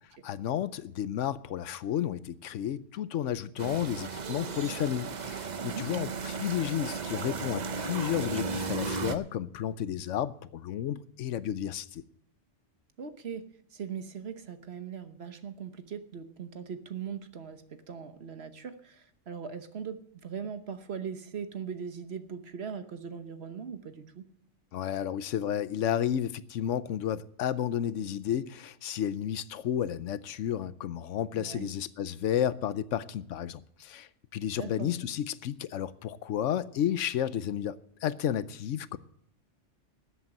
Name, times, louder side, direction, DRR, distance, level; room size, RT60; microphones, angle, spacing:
voice 1, 0.2-12.0 24.7-39.0, left 10 dB, 75° left, 1.0 m, -32 dB
sound 1, 3.6-9.2, right 4 dB, 40° right, 0.8 m, -35 dB
voice 2, 5.6-5.9 13.0-24.2 31.3-31.7 34.5-34.9, right 7 dB, 55° right, 1.3 m, -40 dB
13.0 x 8.1 x 7.6 m
omnidirectional pair, 1.3 m